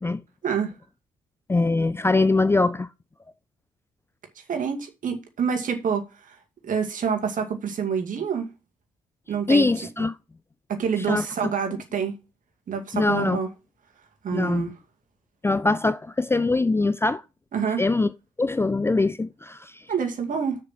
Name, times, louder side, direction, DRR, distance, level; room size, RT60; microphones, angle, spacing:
voice 1, 1.5-2.9 9.5-10.1 11.1-11.5 12.9-13.4 14.3-14.7 15.4-17.2 17.8-18.1 18.4-19.8, left 3 dB, 15° left, 0.5 m, -22 dB
voice 2, 4.5-6.4 6.6-8.5 9.3-9.7 10.7-12.2 12.7-13.5 14.2-14.7 17.5-17.8 19.9-20.6, right 6 dB, 45° right, 2.2 m, -27 dB
6.8 x 6.6 x 5.8 m
figure-of-eight pair, 45°, 18 cm